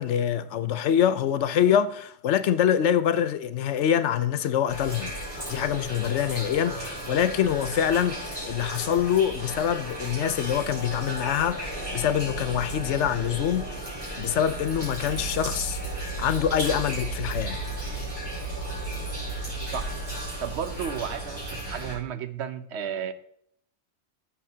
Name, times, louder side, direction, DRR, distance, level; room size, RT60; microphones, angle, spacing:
voice 1, 0.0-5.1 5.5-13.7 14.2-15.8 16.2-17.6, left 9 dB, 80° left, 1.0 m, -25 dB
sound 1, 4.7-21.9, right 2 dB, 35° right, 4.1 m, -34 dB
voice 2, 18.0-19.0 19.5-23.1, right 8 dB, 70° right, 1.0 m, -35 dB
14.0 x 7.1 x 2.8 m
omnidirectional pair, 1.2 m